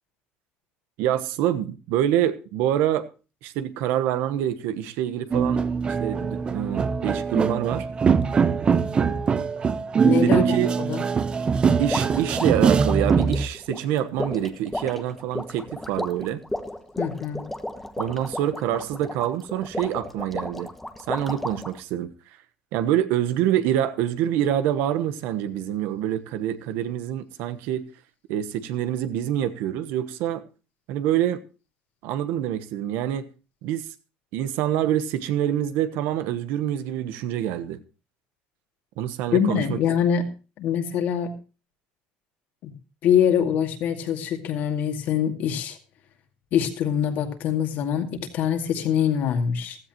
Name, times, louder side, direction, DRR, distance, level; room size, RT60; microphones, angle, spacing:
voice 1, 1.0-3.1 3.4-5.6 6.0-7.9 10.2-10.7 11.8-16.4 18.0-20.7 21.1-22.1 22.7-27.8 28.3-30.4 30.9-31.4 32.0-33.3 33.6-33.9 34.3-37.8 39.0-39.8, right 11 dB, 70° right, 1.1 m, -26 dB
sound 1, 5.3-13.5, right 6 dB, 25° right, 0.6 m, -22 dB
voice 2, 10.0-11.0 17.0-17.4 39.3-40.2 40.6-41.3 42.6-42.7 43.0-45.8 46.5-49.8, left 8 dB, 55° left, 2.3 m, -24 dB
sound 2, 11.9-21.8, left 1 dB, 5° left, 1.1 m, -33 dB
15.5 x 13.0 x 2.9 m
cardioid pair, 125°, 4 cm